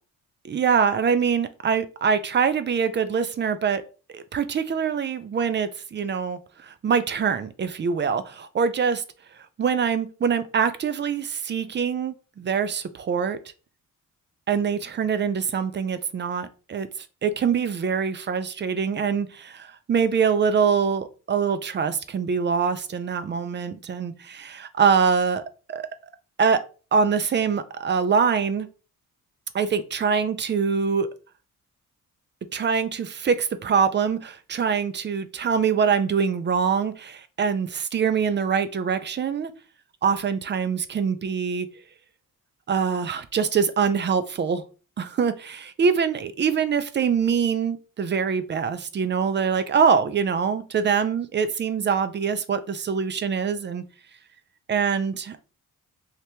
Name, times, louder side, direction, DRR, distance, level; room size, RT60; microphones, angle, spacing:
voice 1, 0.4-3.8 4.1-9.0 9.6-13.4 14.5-16.9 17.2-25.4 25.7-25.9 26.4-26.6 26.9-28.7 29.5-31.1 32.5-39.5 40.0-41.7 42.7-44.6 45.0-53.8 54.7-55.4, right 6 dB, 35° right, 0.4 m, -24 dB
2.9 x 2.8 x 3.3 m
cardioid pair, 105°, 33 cm